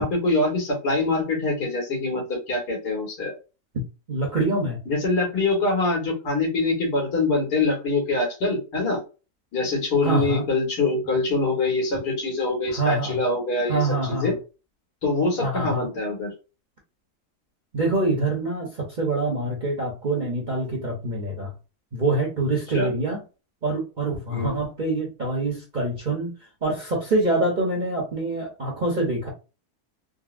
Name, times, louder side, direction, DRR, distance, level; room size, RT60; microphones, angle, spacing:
voice 1, 0.0-3.4 4.9-9.0 9.5-14.4 15.0-16.3 22.7-22.9 24.3-24.6, left 2 dB, 80° left, 2.0 m, -24 dB
voice 2, 4.1-4.8 10.0-10.4 12.7-13.2 13.7-14.3 15.4-15.9 17.7-21.5 21.9-23.2 23.6-26.3 26.6-29.3, right 2 dB, 45° right, 0.6 m, -25 dB
3.9 x 2.1 x 2.4 m
omnidirectional pair, 1.7 m